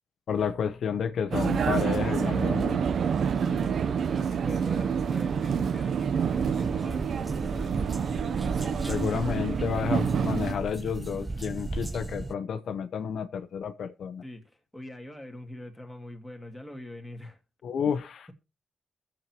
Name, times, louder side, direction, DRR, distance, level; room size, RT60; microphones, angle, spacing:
voice 1, 0.3-2.8 8.9-14.2 17.6-18.3, left 7 dB, 70° left, 0.9 m, -30 dB
Vehicle, 1.3-10.5, right 7 dB, 65° right, 0.7 m, -27 dB
voice 2, 3.3-7.9 11.7-11.9 14.2-17.4 17.8-18.0, left 1 dB, 5° left, 2.4 m, -43 dB
sound 1, 6.3-12.3, right 2 dB, 15° right, 0.6 m, -36 dB
21.5 x 7.6 x 3.0 m
cardioid pair, 75°, 0 cm